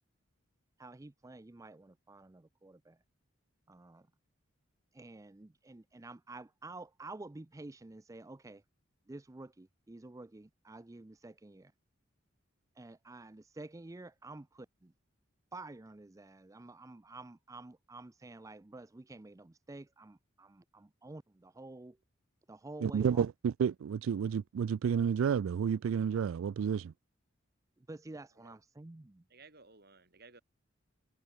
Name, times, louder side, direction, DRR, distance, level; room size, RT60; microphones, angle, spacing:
voice 1, 0.8-3.0 3.7-4.1 4.9-8.6 9.1-11.7 12.8-14.9 15.5-22.0 22.5-23.2 27.9-29.2, right 2 dB, 15° right, 0.5 m, -50 dB
voice 2, 22.8-26.9, right 7 dB, 80° right, 0.3 m, -31 dB
voice 3, 29.3-30.4, right 4 dB, 50° right, 5.7 m, -57 dB
head